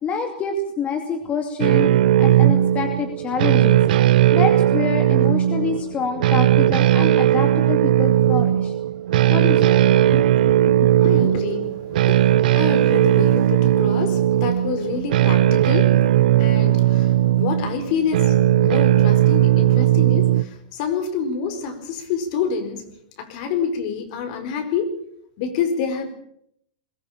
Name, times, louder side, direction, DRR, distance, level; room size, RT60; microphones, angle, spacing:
voice 1, 0.0-1.9 2.2-3.8 4.3-8.7 9.3-9.6 10.0-11.4, left 6 dB, 25° left, 5 dB, 2.5 m, -27 dB
sound 1, 1.6-20.4, right 12 dB, 75° right, 0.9 m, -17 dB
voice 2, 11.0-11.7 11.9-15.9 16.4-18.4 18.6-22.8 23.2-24.9 25.4-26.1, left 6 dB, 55° left, 8 dB, 4.5 m, -27 dB
22.0 x 15.0 x 8.8 m, 0.73 s
hypercardioid pair, 135°, 5 cm